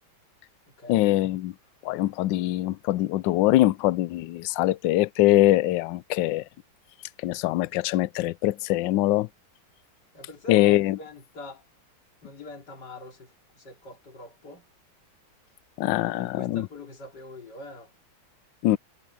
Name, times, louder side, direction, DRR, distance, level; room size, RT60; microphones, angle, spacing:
voice 1, 0.9-1.5 1.8-6.4 7.2-9.3 10.5-11.0 15.8-16.7 18.6-18.8, left 16 dB, 75° left, 1.1 m, -23 dB
voice 2, 10.1-11.6 12.2-14.7 16.1-17.9, left 2 dB, 50° left, 3.6 m, -44 dB
omnidirectional pair, 2.3 m